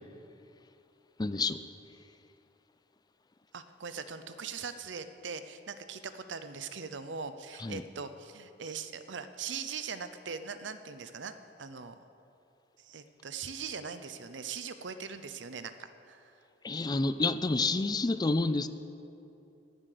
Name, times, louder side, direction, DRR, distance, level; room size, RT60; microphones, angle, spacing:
voice 1, 1.2-1.6 7.6-7.8 16.6-18.7, left 3 dB, 20° left, 12 dB, 0.4 m, -29 dB
voice 2, 3.5-11.3 11.6-12.0 12.8-16.4, right 5 dB, 75° right, 11 dB, 0.8 m, -41 dB
18.5 x 7.6 x 6.8 m, 2.8 s
head